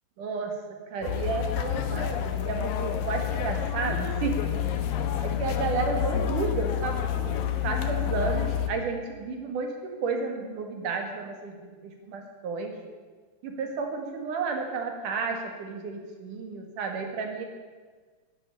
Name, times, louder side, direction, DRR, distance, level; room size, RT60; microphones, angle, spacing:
voice 1, 0.2-0.5 0.9-4.4 5.2-7.4 7.6-12.8 13.4-17.5, right 4 dB, 70° right, 4 dB, 3.4 m, -32 dB
sound 1, 1.0-8.7, left 10 dB, 90° left, 2.8 m, -29 dB
11.5 x 11.5 x 10.0 m, 1.4 s
omnidirectional pair, 3.9 m